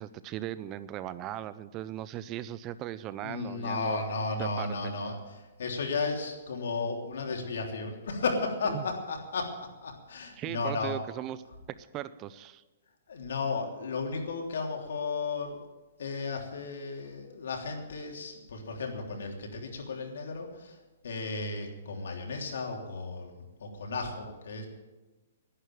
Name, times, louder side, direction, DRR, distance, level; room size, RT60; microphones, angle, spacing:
voice 1, 0.0-4.0 4.4-4.9 8.7-8.8 10.4-11.4 11.7-12.6, right 12 dB, 20° right, 15 dB, 0.4 m, -38 dB
voice 2, 3.2-9.5 9.8-11.0 13.1-15.6 16.0-20.8 21.0-24.7, left 4 dB, 75° left, 2 dB, 3.2 m, -34 dB
11.0 x 11.0 x 9.2 m, 1.2 s
hypercardioid pair, 165°, 0 cm